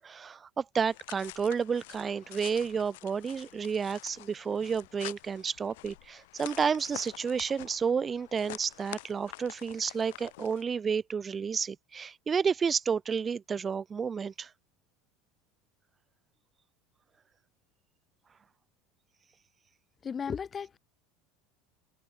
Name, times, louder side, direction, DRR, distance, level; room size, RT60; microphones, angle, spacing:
voice 1, 0.0-14.5, right 6 dB, 30° right, 0.5 m, -31 dB
sound 1, 0.8-10.6, left 20 dB, 75° left, 1.5 m, -48 dB
voice 2, 20.0-20.8, left 6 dB, 30° left, 3.0 m, -35 dB
hypercardioid pair, 85°, 0 cm